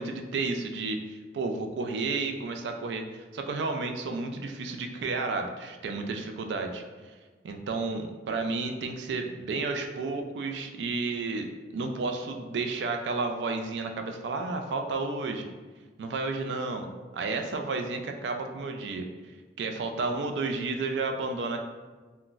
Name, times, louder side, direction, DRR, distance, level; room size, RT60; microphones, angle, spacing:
voice 1, 0.0-7.1 7.4-11.5 11.7-15.5 16.0-19.1 19.6-21.6, right 3 dB, 75° right, 4 dB, 0.3 m, -32 dB
3.8 x 2.1 x 2.4 m, 1.3 s
head